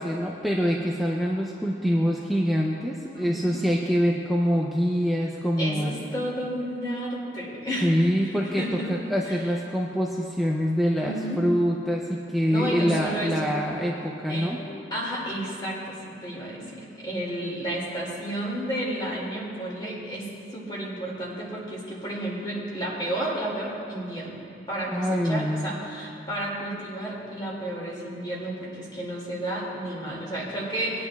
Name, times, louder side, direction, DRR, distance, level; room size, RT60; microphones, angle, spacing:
voice 1, 0.0-5.9 7.8-14.6 24.9-25.7, equal, ahead, -2 dB, 0.5 m, -25 dB
voice 2, 3.1-3.7 5.6-8.9 9.2-9.4 11.0-11.5 12.5-13.5 14.3-14.5 14.9-20.3 20.5-24.4 24.7-31.1, right 1 dB, 25° left, -5 dB, 2.3 m, -32 dB
20.0 x 9.8 x 2.3 m, 2.6 s
head